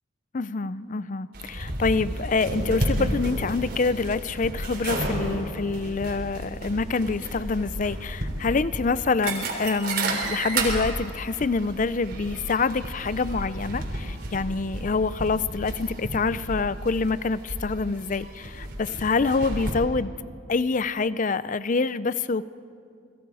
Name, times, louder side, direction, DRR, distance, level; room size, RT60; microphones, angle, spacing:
voice 1, 0.3-20.1 20.5-22.4, left 4 dB, 40° left, 16 dB, 0.5 m, -26 dB
sound 1, 1.3-19.7, right 1 dB, 50° right, 3.8 m, -32 dB
29.0 x 21.5 x 4.9 m, 2.3 s
head